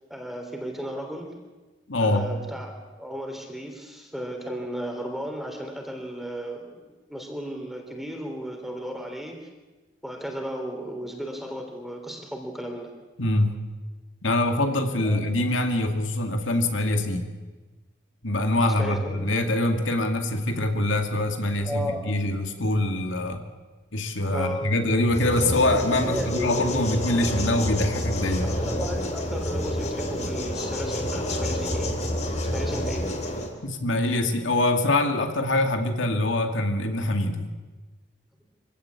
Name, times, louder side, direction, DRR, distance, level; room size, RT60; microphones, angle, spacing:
voice 1, 0.1-1.3 2.0-9.4 10.0-12.9 15.0-15.2 18.8-19.3 21.6-22.1 24.3-24.7 26.0-26.8 28.4-31.9 32.5-33.1, equal, ahead, 3 dB, 3.4 m, -34 dB
voice 2, 1.9-2.3 13.2-13.6 14.2-17.3 18.2-23.4 23.9-28.5 33.6-37.5, left 1 dB, 90° left, 5 dB, 2.3 m, -24 dB
sound 1, 25.1-33.5, left 1 dB, 35° left, 3.2 m, -28 dB
25.5 x 16.0 x 8.5 m, 1.2 s
head